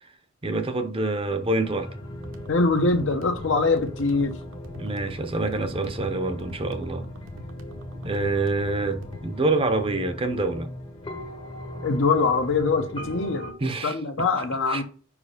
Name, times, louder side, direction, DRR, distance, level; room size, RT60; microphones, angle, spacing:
voice 1, 0.4-1.9 4.8-7.1 8.0-10.7 13.6-14.3 14.7-14.8, right 2 dB, 25° right, 0.7 m, -26 dB
sound 1, 1.6-13.5, left 1 dB, 25° left, 0.9 m, -39 dB
sound 2, 2.2-9.2, equal, 70° right, 1.1 m, -44 dB
voice 2, 2.5-4.4 11.8-14.8, left 3 dB, 65° left, 0.9 m, -23 dB
5.1 x 4.8 x 5.0 m
head